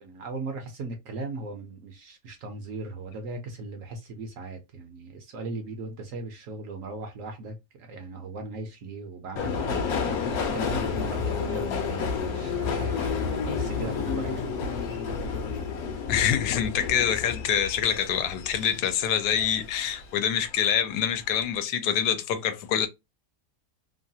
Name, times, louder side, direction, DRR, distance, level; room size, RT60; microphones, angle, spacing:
voice 1, 0.0-9.9 10.2-14.9, right 3 dB, 65° right, 0.9 m, -38 dB
Subway metro underground, 9.4-20.1 20.4-21.2 21.4-21.6, left 5 dB, 70° left, 1.0 m, -30 dB
voice 2, 16.1-22.9, left 9 dB, 85° left, 1.2 m, -26 dB
3.0 x 2.3 x 2.7 m
omnidirectional pair, 1.8 m